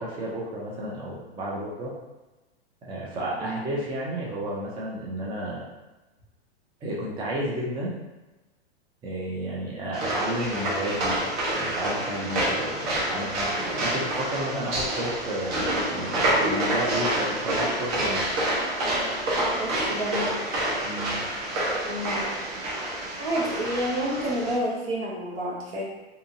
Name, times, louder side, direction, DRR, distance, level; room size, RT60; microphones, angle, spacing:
voice 1, 0.0-1.9 2.8-5.7 6.8-7.9 9.0-11.2 11.5-18.3 20.8-21.2, right 1 dB, 15° right, -5 dB, 0.4 m, -32 dB
sound 1, 9.9-24.6, right 1 dB, 40° right, 0.9 m, -28 dB
voice 2, 19.6-20.3 21.8-22.3 23.2-25.8, equal, 70° right, -4 dB, 1.2 m, -29 dB
2.7 x 2.5 x 2.5 m, 1.1 s
hypercardioid pair, 120°, 32 cm